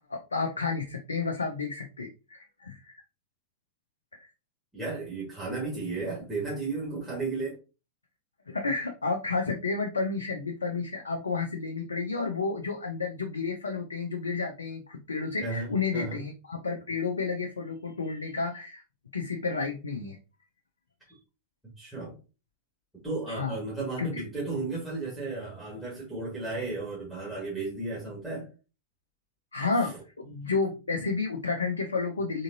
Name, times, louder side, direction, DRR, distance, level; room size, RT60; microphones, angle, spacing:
voice 1, 0.1-2.9 4.2-4.3 8.5-18.8 19.1-20.2 23.3-23.6 24.0-24.2 29.5-32.4, left 4 dB, 75° left, 0.5 m, -31 dB
voice 2, 4.7-7.6 15.4-16.2 21.6-22.1 23.0-28.5 29.8-29.9, right 3 dB, 5° right, 1.8 m, -34 dB
3.8 x 3.7 x 2.7 m
figure-of-eight pair, 90°, 0 cm